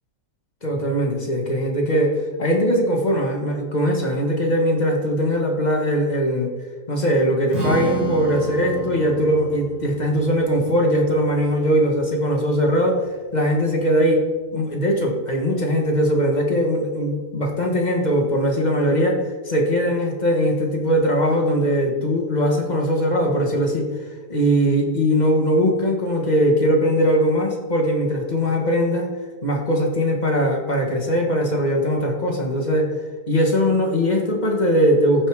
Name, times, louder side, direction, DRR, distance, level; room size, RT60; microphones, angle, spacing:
voice 1, 0.6-2.1 2.4-6.5 6.9-13.0 13.3-14.2 14.5-19.2 19.4-23.9 24.3-29.1 29.4-32.9 33.3-35.3, equal, 25° left, 0 dB, 1.6 m, -20 dB
Strum, 7.5-13.8, right 2 dB, 70° right, 3.0 m, -33 dB
14.5 x 5.4 x 4.8 m, 1.4 s
omnidirectional pair, 1.8 m